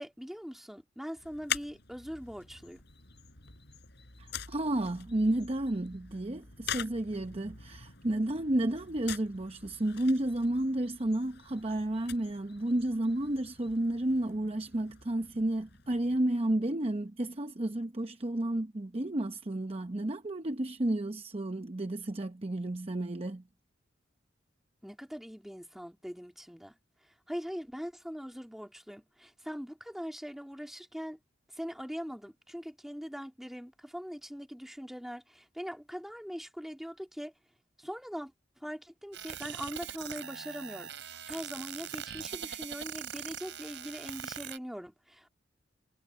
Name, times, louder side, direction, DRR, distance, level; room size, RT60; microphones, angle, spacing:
voice 1, 0.0-2.8 24.8-26.7 27.3-31.2 31.5-37.3 37.8-38.3 38.6-45.3, equal, ahead, 2.8 m, -41 dB
sound 1, 1.2-16.3, left 8 dB, 60° left, 6.5 m, -45 dB
voice 2, 4.2-23.4, right 1 dB, 30° right, 0.8 m, -31 dB
sound 2, 39.1-44.6, right 8 dB, 65° right, 5.4 m, -42 dB
head